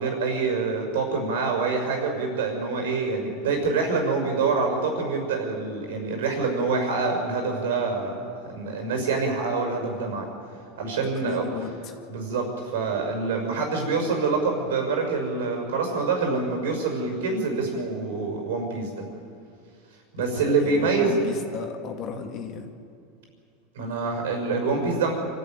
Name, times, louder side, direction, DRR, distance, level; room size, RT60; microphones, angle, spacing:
voice 1, 0.0-10.3 10.8-11.4 12.1-19.0 20.1-21.2 22.1-22.3 23.7-25.1, right 4 dB, 85° right, 3 dB, 6.1 m, -26 dB
voice 2, 11.2-11.9 20.2-22.7, left 7 dB, 50° left, 4 dB, 2.3 m, -35 dB
25.5 x 14.0 x 9.2 m, 2.4 s
supercardioid pair, 120°, 0 cm